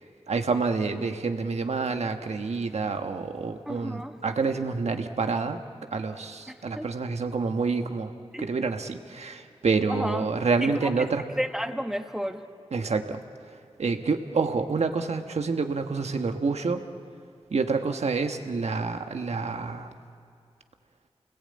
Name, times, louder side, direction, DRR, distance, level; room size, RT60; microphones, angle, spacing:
voice 1, 0.3-5.6 5.9-8.1 8.4-11.3 12.7-13.2 13.8-16.8 17.5-19.9, right 4 dB, 80° right, 6 dB, 1.4 m, -28 dB
voice 2, 3.7-4.1 6.8-6.9 8.3-8.5 9.9-10.3 10.6-11.1 11.4-12.4, equal, 5° right, 6 dB, 1.6 m, -31 dB
29.5 x 20.0 x 8.7 m, 2.5 s
cardioid pair, 50°, 11 cm